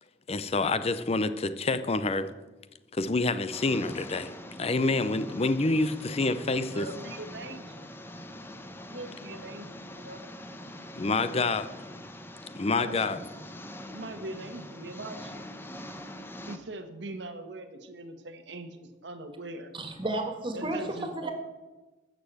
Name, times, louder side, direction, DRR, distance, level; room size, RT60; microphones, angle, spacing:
voice 1, 0.3-2.3 2.9-4.3 4.6-6.9 11.0-11.7 12.6-13.2, left 3 dB, 35° left, 12 dB, 0.6 m, -27 dB
sound 1, 3.5-16.6, left 1 dB, 15° left, 0.9 m, -43 dB
voice 2, 6.6-7.9 8.8-10.2 12.6-13.3 13.9-15.5 16.5-19.7 20.5-21.1, right 2 dB, 80° right, 7 dB, 1.4 m, -42 dB
voice 3, 19.7-21.3, right 2 dB, 30° right, 5 dB, 1.9 m, -32 dB
14.0 x 6.7 x 7.8 m, 1.1 s
head